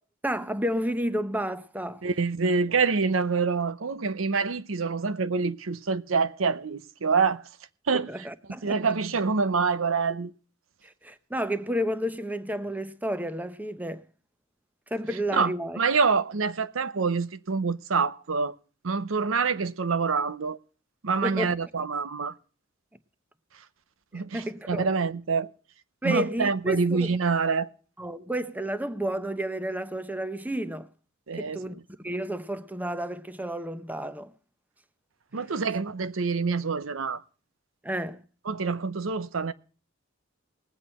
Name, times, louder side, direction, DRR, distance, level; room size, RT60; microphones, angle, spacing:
voice 1, 0.2-2.0 7.9-8.9 10.8-14.0 14.9-15.8 21.2-21.5 24.1-24.9 26.0-27.2 28.0-30.9 31.4-31.8 32.0-34.3 37.8-38.2, right 1 dB, 10° right, 0.8 m, -31 dB
voice 2, 2.0-7.4 7.9-8.3 8.6-10.3 15.3-18.5 18.8-20.6 21.0-22.3 24.1-25.5 26.0-27.7 31.3-31.6 35.3-37.2 38.5-39.5, right 5 dB, 80° right, 0.7 m, -26 dB
20.0 x 8.3 x 4.2 m
head